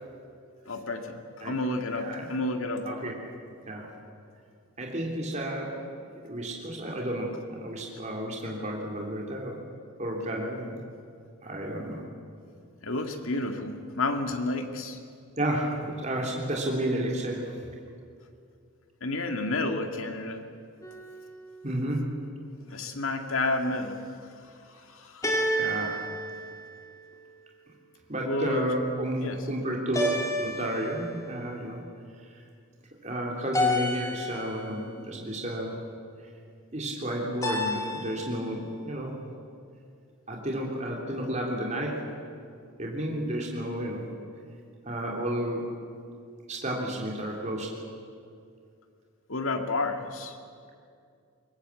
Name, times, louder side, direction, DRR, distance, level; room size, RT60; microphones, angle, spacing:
voice 1, 0.7-1.2 1.4-3.2 12.8-15.0 19.0-20.4 22.7-24.0 24.8-25.6 28.2-28.7 29.2-29.4 49.3-50.4, left 2 dB, 70° left, 5 dB, 2.1 m, -30 dB
voice 2, 1.9-2.3 2.8-3.1 3.7-3.9 4.8-5.8 6.2-9.6 10.0-10.8 11.4-12.0 15.4-17.6 21.6-22.1 25.6-26.0 28.1-31.8 32.3-32.4 33.0-35.9 36.7-39.1 40.3-42.1 42.8-44.1 44.8-46.0 46.5-47.8, right 1 dB, 30° right, -1 dB, 3.3 m, -32 dB
sound 1, 20.8-21.5 25.2-27.2 29.9-31.3 33.5-34.7 37.4-38.4, left 1 dB, 15° left, 2.5 m, -30 dB
22.5 x 19.0 x 8.4 m, 2.3 s
head